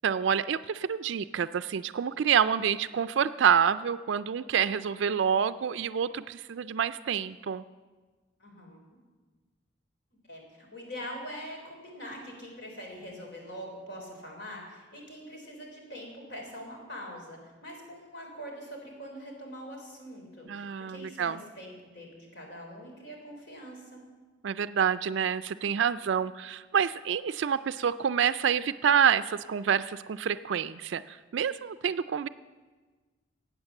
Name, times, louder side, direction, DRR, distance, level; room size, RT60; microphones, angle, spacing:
voice 1, 0.0-7.6 20.5-21.4 24.4-32.3, right 8 dB, 70° right, 13 dB, 0.4 m, -27 dB
voice 2, 8.4-8.8 10.3-24.0, equal, 55° left, 0 dB, 3.7 m, -43 dB
15.5 x 8.9 x 7.1 m, 1.3 s
head